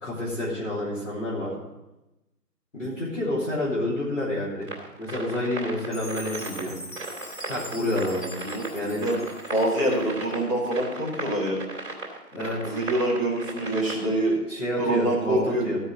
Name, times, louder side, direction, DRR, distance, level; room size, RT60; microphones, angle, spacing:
voice 1, 0.0-1.5 2.7-4.7 5.0-6.7 7.5-8.3 8.7-9.0 12.3-12.8 14.5-15.8, left 1 dB, 50° left, -7 dB, 3.1 m, -29 dB
sound 1, 4.6-14.4, right 3 dB, 50° right, 3.0 m, -37 dB
Chime, 5.9-10.2, left 1 dB, 70° left, 3.3 m, -42 dB
voice 2, 8.4-9.2 9.5-11.6 12.6-14.3 14.8-15.7, right 1 dB, 20° left, -8 dB, 2.1 m, -25 dB
15.5 x 5.4 x 6.2 m, 1.0 s
figure-of-eight pair, 180°, 49 cm